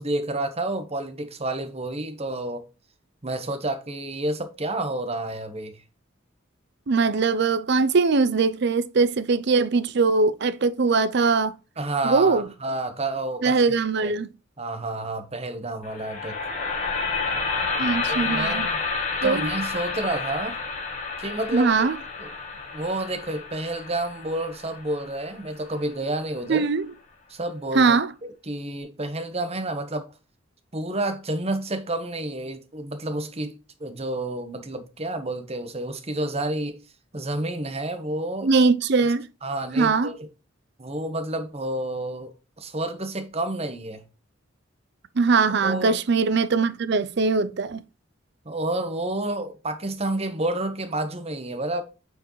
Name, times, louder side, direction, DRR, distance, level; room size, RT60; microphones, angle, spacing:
voice 1, 0.0-2.7 3.2-5.8 11.8-13.6 14.0-14.1 14.6-16.4 18.1-18.8 19.2-20.6 21.2-21.8 22.2-22.3 22.7-26.7 27.3-27.9 28.5-30.1 30.7-36.8 37.1-38.5 39.4-40.2 40.8-44.0 45.6-45.9 48.4-51.8, right 2 dB, 30° right, 1.1 m, -30 dB
voice 2, 6.9-11.6 12.0-12.5 13.4-14.3 17.8-18.7 19.2-19.5 21.5-22.0 26.5-26.9 27.7-28.1 38.4-39.3 39.8-40.1 45.2-47.8, right 4 dB, 55° right, 0.5 m, -21 dB
sound 1, 15.8-26.0, left 4 dB, 35° left, 1.4 m, -30 dB
8.4 x 4.7 x 3.1 m
head